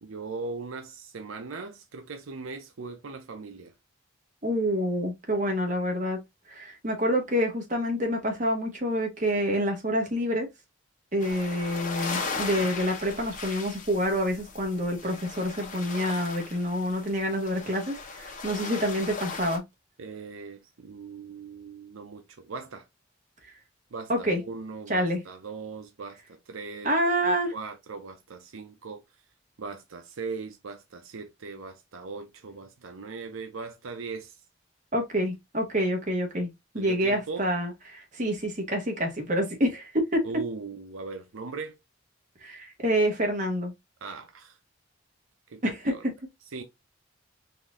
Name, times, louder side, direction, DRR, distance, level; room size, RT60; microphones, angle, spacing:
voice 1, 0.0-3.7 20.0-22.9 23.9-27.1 27.5-29.0 29.6-34.3 36.7-37.5 40.2-41.8 44.0-44.6 45.5-46.0 46.5-46.6, right 4 dB, 90° right, 0.7 m, -39 dB
voice 2, 4.4-6.2 6.5-10.5 11.1-19.6 24.1-24.4 24.9-25.2 26.8-27.5 34.9-36.5 36.7-40.2 42.4-43.7 45.6-45.9, equal, 40° right, 1.4 m, -27 dB
sound 1, 11.2-19.6, left 4 dB, 40° left, 1.0 m, -37 dB
4.3 x 2.7 x 3.6 m
head